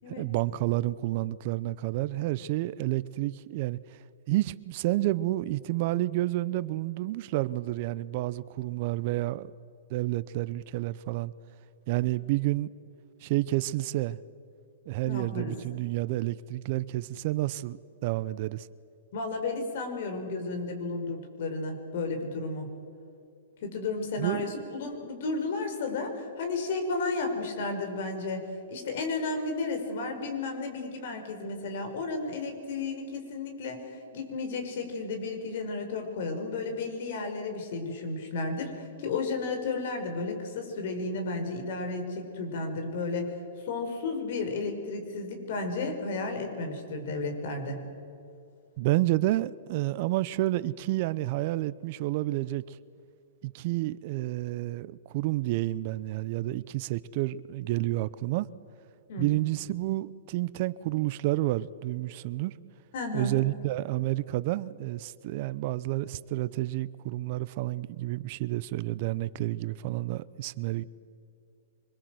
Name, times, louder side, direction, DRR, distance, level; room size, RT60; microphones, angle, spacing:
voice 1, 0.1-4.0 4.3-9.5 9.9-11.3 11.9-12.7 13.2-14.2 14.9-18.7 24.2-24.8 48.8-52.8 53.4-58.5 59.2-62.5 63.1-70.8, right 17 dB, 45° right, 0.7 m, -30 dB
voice 2, 15.0-15.6 19.1-22.7 23.6-33.9 34.1-43.4 43.7-47.9 59.1-59.3 62.9-63.3, left 3 dB, 60° left, 5.4 m, -33 dB
25.0 x 22.0 x 7.9 m
hypercardioid pair, 135°, 0 cm